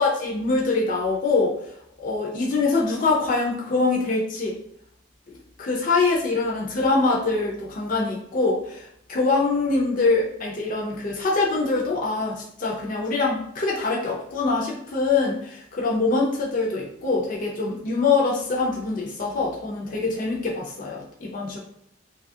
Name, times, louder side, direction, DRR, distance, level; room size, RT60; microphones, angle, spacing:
voice 1, 0.0-1.5 2.0-4.6 5.3-21.6, left 3 dB, 40° left, -3 dB, 0.4 m, -24 dB
2.7 x 2.3 x 2.6 m, 0.72 s
head